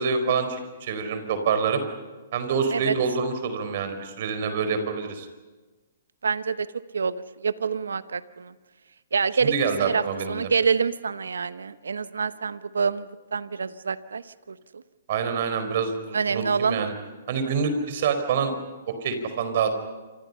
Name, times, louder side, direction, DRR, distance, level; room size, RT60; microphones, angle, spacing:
voice 1, 0.0-1.8 2.3-5.3 9.4-10.5 15.1-16.9 17.3-18.5 19.0-19.7, right 5 dB, 55° right, 8 dB, 4.8 m, -26 dB
voice 2, 6.2-6.7 6.9-7.2 7.4-8.5 9.1-9.5 9.8-10.0 10.3-14.8 16.1-16.9, right 5 dB, 80° right, 14 dB, 1.0 m, -26 dB
28.5 x 26.5 x 5.6 m, 1.2 s
hypercardioid pair, 130°, 0 cm